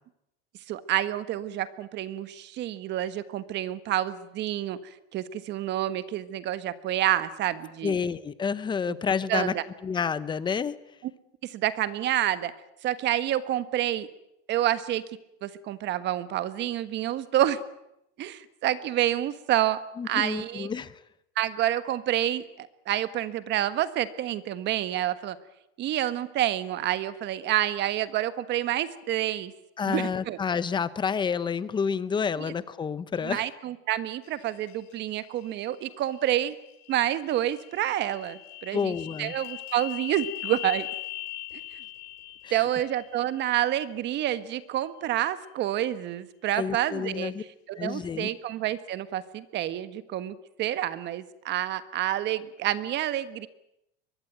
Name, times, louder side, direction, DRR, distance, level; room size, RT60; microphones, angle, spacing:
voice 1, 0.7-4.8 5.1-8.0 8.9-9.0 9.3-9.6 11.4-12.5 12.8-14.1 14.5-15.0 15.4-17.6 18.2-20.7 21.4-25.4 25.8-29.5 29.8-30.4 32.4-32.5 33.2-36.5 36.9-38.9 39.2-40.9 41.5-41.6 42.5-47.3 47.7-53.5, right 12 dB, 35° right, 13 dB, 1.4 m, -28 dB
voice 2, 7.8-9.5 9.8-10.8 20.0-21.0 29.8-33.4 38.7-39.3 42.4-42.6 46.5-47.4 47.8-48.3, left 6 dB, 15° left, 16 dB, 0.8 m, -29 dB
sound 1, 34.2-44.6, left 18 dB, 85° left, 6.1 m, -41 dB
23.5 x 20.0 x 9.2 m, 0.83 s
cardioid pair, 160°, 30 cm